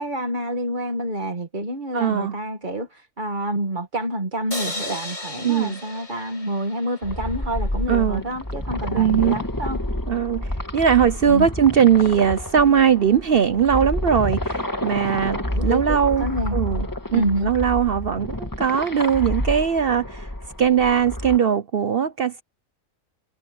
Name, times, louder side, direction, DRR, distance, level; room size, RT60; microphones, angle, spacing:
voice 1, 0.0-9.8 11.3-11.5 14.9-16.6 17.1-17.5, right 1 dB, 35° right, 2.0 m, -28 dB
voice 2, 1.9-2.4 5.4-5.8 7.9-8.2 8.9-9.4 10.1-20.3 20.6-22.4, right 8 dB, 55° right, 0.8 m, -20 dB
sound 1, 4.5-7.8, left 1 dB, 70° left, 7.6 m, -35 dB
sound 2, 7.0-21.4, left 1 dB, 15° left, 2.0 m, -29 dB
omnidirectional pair, 1.4 m